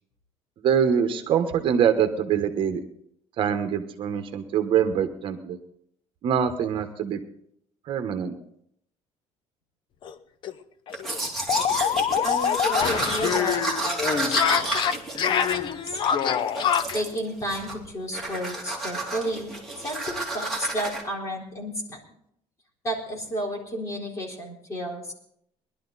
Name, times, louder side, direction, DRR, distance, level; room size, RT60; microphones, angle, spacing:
voice 1, 0.6-2.8 3.4-5.6 6.2-7.2 7.9-8.3, right 8 dB, 45° right, 8 dB, 1.1 m, -24 dB
sound 1, 10.0-10.1 10.4-10.5 10.9-17.0, left 8 dB, 45° left, 0.7 m, -25 dB
Domestic sounds home sounds, 10.9-16.1 16.5-17.2 17.5-17.8 18.1-21.0, right 2 dB, ahead, 2.7 m, -31 dB
voice 2, 12.2-14.7 15.2-16.0 16.9-22.0 22.8-25.1, equal, 25° left, -1 dB, 3.9 m, -32 dB
20.5 x 12.0 x 4.1 m, 0.71 s
cardioid pair, 170°, 12 cm